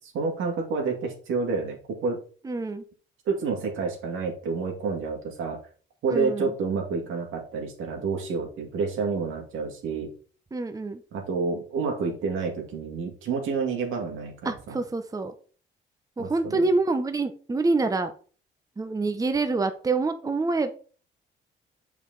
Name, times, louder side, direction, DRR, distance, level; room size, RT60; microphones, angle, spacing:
voice 1, 0.0-2.2 3.3-5.6 6.0-10.1 11.1-14.8 16.2-16.7, right 4 dB, 80° right, 1 dB, 2.2 m, -29 dB
voice 2, 2.4-2.8 6.1-6.5 10.5-11.0 14.4-15.3 16.2-18.1 18.8-20.7, right 3 dB, 15° right, 8 dB, 0.8 m, -26 dB
6.8 x 4.7 x 3.9 m, 0.40 s
cardioid pair, 90°, 20 cm